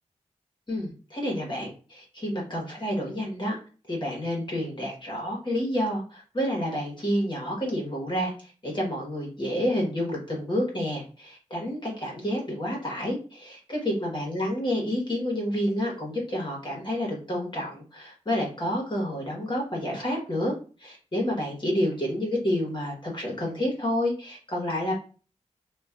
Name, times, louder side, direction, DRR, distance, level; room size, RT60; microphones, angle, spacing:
voice 1, 0.7-3.6 3.9-8.3 8.6-20.5 20.8-24.9, equal, 40° left, -2 dB, 1.3 m, -29 dB
3.1 x 2.5 x 2.4 m, 0.37 s
cardioid pair, 55°, 13 cm